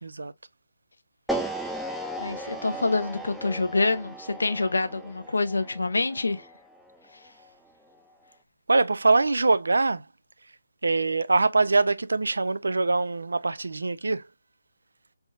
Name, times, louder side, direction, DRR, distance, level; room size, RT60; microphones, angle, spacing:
voice 1, 0.0-0.3 8.7-10.0 10.8-14.2, right 3 dB, 85° right, 0.5 m, -23 dB
sound 1, 1.3-7.4, right 1 dB, ahead, 0.4 m, -36 dB
voice 2, 2.2-6.5, left 3 dB, 85° left, 0.8 m, -26 dB
4.2 x 3.5 x 2.3 m
hypercardioid pair, 155°, 0 cm